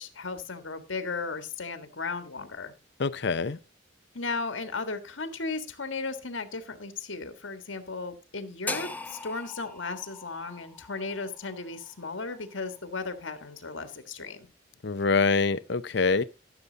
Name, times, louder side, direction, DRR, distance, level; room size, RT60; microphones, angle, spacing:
voice 1, 0.0-2.7 4.1-14.5, left 4 dB, 85° left, 1.7 m, -35 dB
voice 2, 3.0-3.6 14.8-16.2, left 4 dB, 65° left, 0.6 m, -25 dB
sound 1, 8.7-12.8, left 3 dB, 10° left, 0.7 m, -40 dB
14.0 x 7.1 x 4.0 m
head